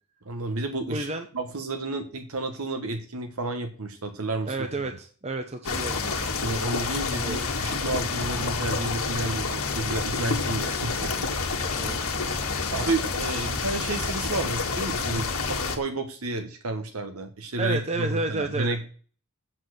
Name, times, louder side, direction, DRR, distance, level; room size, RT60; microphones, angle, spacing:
voice 1, 0.2-1.1 1.3-4.7 6.3-11.7 12.7-18.8, right 2 dB, 75° right, 6 dB, 1.3 m, -31 dB
voice 2, 0.9-1.2 4.5-6.0 7.1-7.4 11.7-12.0 17.6-18.8, right 2 dB, 30° right, 6 dB, 0.9 m, -31 dB
sound 1, 5.6-15.8, left 4 dB, 70° left, 1.8 m, -28 dB
7.6 x 6.2 x 7.9 m, 0.42 s
head